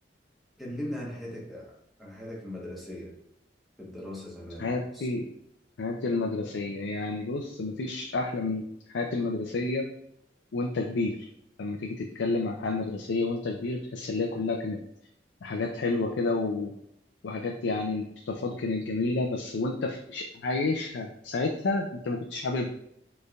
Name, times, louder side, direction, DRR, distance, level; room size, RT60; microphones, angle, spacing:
voice 1, 0.6-3.2 3.8-5.1, left 1 dB, ahead, -5 dB, 1.0 m, -39 dB
voice 2, 4.6-5.3 5.8-8.7 8.9-9.9 10.5-11.3 11.6-14.8 15.4-16.7 17.2-22.7, left 3 dB, 90° left, 2 dB, 0.4 m, -30 dB
4.3 x 3.3 x 2.3 m, 0.76 s
head